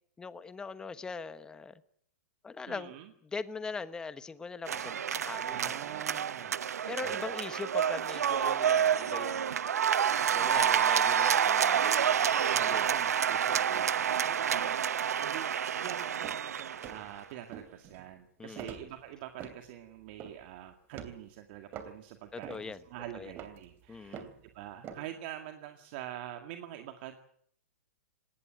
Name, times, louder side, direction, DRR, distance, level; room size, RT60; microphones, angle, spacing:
voice 1, 0.2-1.8 2.4-5.8 6.9-9.6 10.3-12.8 13.7-13.9 18.4-18.8 22.3-22.8 23.1-23.3 23.9-24.3, left 4 dB, 10° left, 14 dB, 1.1 m, -42 dB
voice 2, 2.7-3.1 4.7-4.9 5.5-7.4 10.5-10.9 12.5-24.3 24.5-27.2, right 12 dB, 45° right, 6 dB, 2.1 m, -45 dB
sound 1, 4.7-17.1, right 8 dB, 90° right, 0.9 m, -28 dB
sound 2, 16.2-16.5 16.8-17.1 17.5-18.1 18.6-19.6 20.1-20.5 20.9-21.2 21.7-22.0 22.4-22.7 23.0-24.4 24.8-25.0, right 7 dB, 25° right, 3.0 m, -45 dB
19.5 x 18.5 x 9.2 m, 0.64 s
hypercardioid pair, 150°, 8 cm